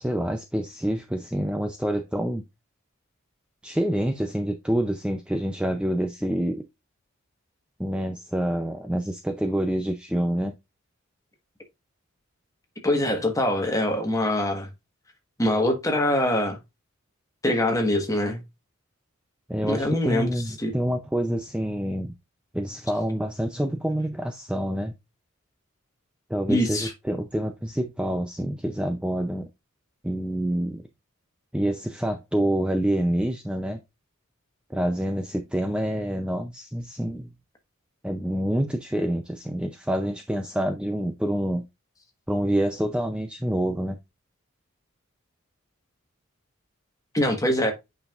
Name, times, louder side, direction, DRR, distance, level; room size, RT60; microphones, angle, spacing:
voice 1, 0.0-2.4 3.6-6.6 7.8-10.5 19.5-22.1 22.5-24.9 26.3-29.5 30.0-30.8 31.5-33.8 34.7-37.3 38.0-41.6 42.3-44.0, right 1 dB, 5° right, 0.4 m, -27 dB
voice 2, 12.8-14.7 15.4-16.6 17.4-18.4 19.6-20.3 20.6-20.7 26.5-26.9 47.1-47.7, left 1 dB, 15° left, 1.2 m, -23 dB
8.4 x 5.3 x 2.4 m
head